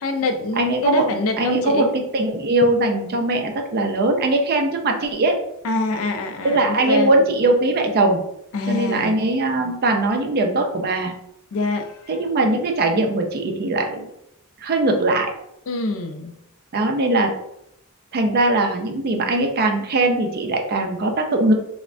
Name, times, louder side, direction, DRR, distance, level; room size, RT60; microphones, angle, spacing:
voice 1, 0.0-1.9 5.6-7.1 8.5-9.2 11.5-12.1 15.7-16.3, left 2 dB, 65° left, 6 dB, 0.4 m, -25 dB
voice 2, 0.6-1.0 1.4-1.9 2.1-5.4 6.4-8.2 8.7-11.1 12.1-14.1 14.6-15.3 16.7-17.3 18.1-21.5, right 2 dB, 45° right, 3 dB, 0.4 m, -20 dB
3.2 x 2.1 x 2.5 m, 0.78 s
head